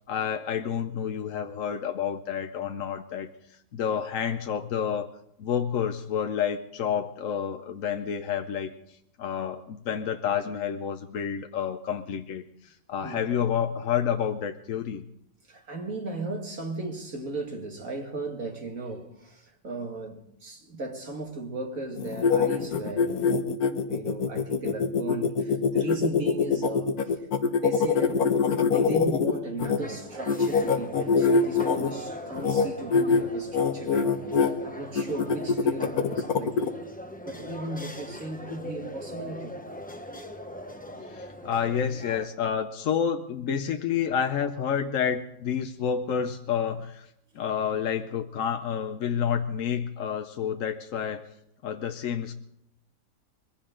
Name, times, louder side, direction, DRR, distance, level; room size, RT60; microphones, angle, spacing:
voice 1, 0.0-5.1 5.4-8.7 9.2-15.0 41.0-47.1 47.3-51.3 51.6-52.3, left 8 dB, 65° left, 1.1 m, -29 dB
voice 2, 15.5-23.2 23.9-27.3 27.6-28.3 28.7-34.2 34.6-36.7 37.2-39.6, right 2 dB, 65° right, 2.6 m, -36 dB
sound 1, 22.0-29.8 30.3-31.9 32.4-32.7 32.9-33.2 33.5-34.5 34.9-36.7, left 5 dB, 85° left, 1.6 m, -23 dB
sound 2, 29.8-42.3, equal, 5° left, 0.8 m, -41 dB
22.5 x 15.5 x 3.8 m
omnidirectional pair, 1.5 m